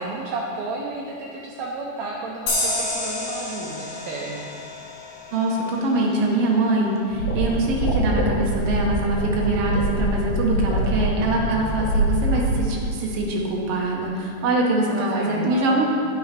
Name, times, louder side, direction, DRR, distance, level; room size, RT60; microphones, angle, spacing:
voice 1, 0.0-4.5 14.9-15.8, right 3 dB, 90° right, -2 dB, 1.5 m, -32 dB
sound 1, 2.5-5.8, left 2 dB, 55° left, 3.5 m, -29 dB
voice 2, 5.3-15.9, right 2 dB, 70° right, -2 dB, 1.4 m, -23 dB
sound 2, 7.1-12.7, right 1 dB, 75° left, 3.1 m, -24 dB
9.5 x 6.2 x 5.1 m, 2.6 s
omnidirectional pair, 4.1 m